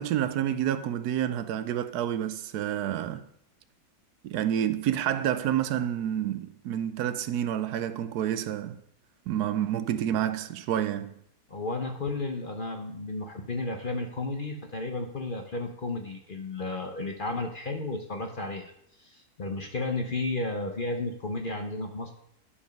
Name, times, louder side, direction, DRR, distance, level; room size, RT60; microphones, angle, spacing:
voice 1, 0.0-3.2 4.2-8.8 9.3-11.1, right 10 dB, 80° right, 1.1 m, -29 dB
voice 2, 11.5-18.7 19.0-22.1, left 2 dB, 45° left, 0.7 m, -33 dB
9.9 x 5.2 x 5.3 m
omnidirectional pair, 1.7 m